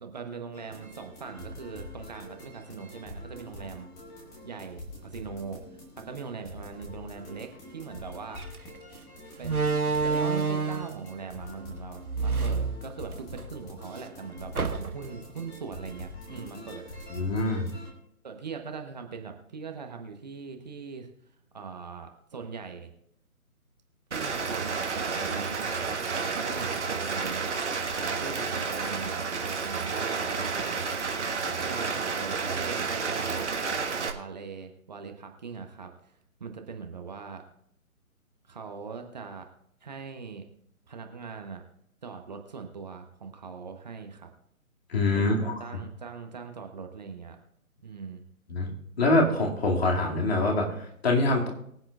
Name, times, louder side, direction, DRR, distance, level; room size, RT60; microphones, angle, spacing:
voice 1, 0.0-3.9 4.4-8.4 9.4-9.7 10.0-17.0 18.2-21.1 21.5-22.9 24.1-27.5 28.0-30.7 31.7-37.4 38.5-39.5 39.8-40.5 40.9-41.6 42.0-44.3 45.2-47.4 47.8-48.2, right 5 dB, 30° right, 4 dB, 1.1 m, -41 dB
sound 1, 0.5-17.9, left 1 dB, 5° left, 1.1 m, -45 dB
Slam, 8.4-8.6 9.4-11.0 12.0-13.4 13.8-13.9 14.5-15.2, right 4 dB, 85° right, 1.1 m, -28 dB
voice 2, 17.1-17.7 44.9-45.5 48.5-48.7 49.0-51.5, left 2 dB, 45° left, -1 dB, 2.4 m, -25 dB
Rain, 24.1-34.1, right 5 dB, 55° right, 1.5 m, -31 dB
23.5 x 7.8 x 2.4 m, 0.73 s
figure-of-eight pair, 145°, 43 cm